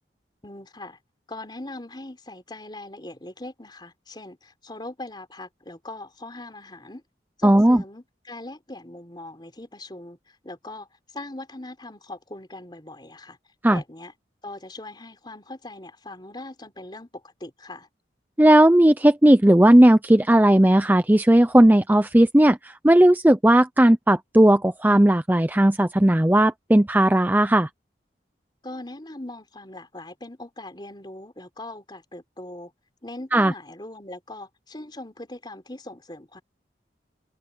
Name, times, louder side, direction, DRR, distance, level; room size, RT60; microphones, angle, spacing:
voice 1, 0.4-1.0 1.3-7.0 7.4-10.9 11.1-13.4 13.7-14.1 14.4-17.9 28.6-32.7 33.0-36.4, left 2 dB, 25° left, 4.1 m, -40 dB
voice 2, 7.4-7.8 13.6-13.8 18.4-27.7 33.3-33.5, right 1 dB, 10° right, 0.6 m, -16 dB
head